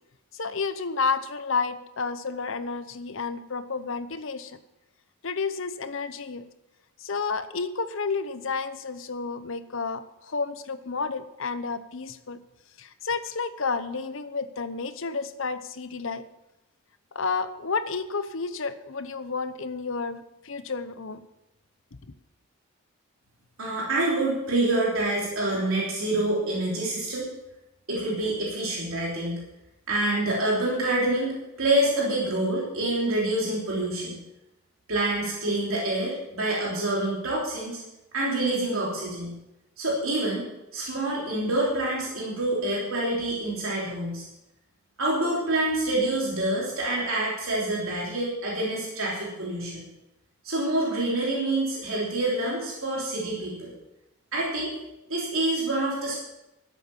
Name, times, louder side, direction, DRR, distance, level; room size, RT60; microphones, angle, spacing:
voice 1, 0.3-4.6 5.2-6.5 7.0-12.4 12.8-16.2 17.1-21.2 22.0-22.1, left 4 dB, 60° left, 12 dB, 0.8 m, -31 dB
voice 2, 23.6-27.3 27.9-29.4 29.9-34.2 34.9-37.8 38.1-39.4 39.8-40.4 40.7-44.2 45.0-49.8 50.4-53.7 54.3-54.7 55.1-56.2, right 1 dB, 70° right, -4 dB, 3.2 m, -27 dB
12.5 x 8.1 x 7.0 m, 0.93 s
head